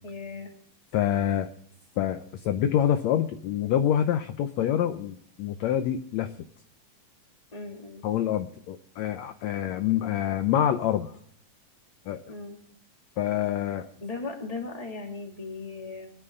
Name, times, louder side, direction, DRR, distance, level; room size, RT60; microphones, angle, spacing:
voice 1, 0.0-0.5 7.5-8.1 12.3-12.6 13.6-13.7 14.0-16.1, left 3 dB, 10° left, 1 dB, 2.3 m, -37 dB
voice 2, 0.9-1.5 2.0-6.3 8.0-11.1 12.1-12.2 13.2-13.9, left 10 dB, 75° left, 8 dB, 1.6 m, -26 dB
25.0 x 9.8 x 3.8 m, 0.65 s
omnidirectional pair, 4.1 m